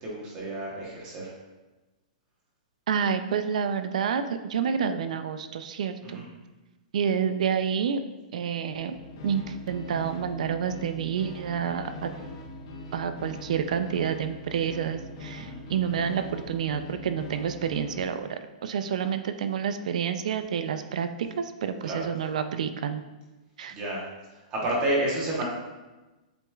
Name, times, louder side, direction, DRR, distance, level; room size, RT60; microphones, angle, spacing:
voice 1, 0.0-1.3 6.1-6.2 15.4-15.5 18.8-18.9 21.9-22.0 23.7-24.0 24.5-25.4, right 1 dB, 20° right, -4 dB, 1.0 m, -30 dB
voice 2, 2.9-6.2 6.9-8.0 8.3-9.0 9.2-12.1 12.9-23.0 23.6-23.8, right 7 dB, 65° right, 9 dB, 0.4 m, -29 dB
sound 1, 8.7-18.2, left 2 dB, 45° left, 0.7 m, -42 dB
7.6 x 3.0 x 2.3 m, 1.1 s
hypercardioid pair, 170°, 4 cm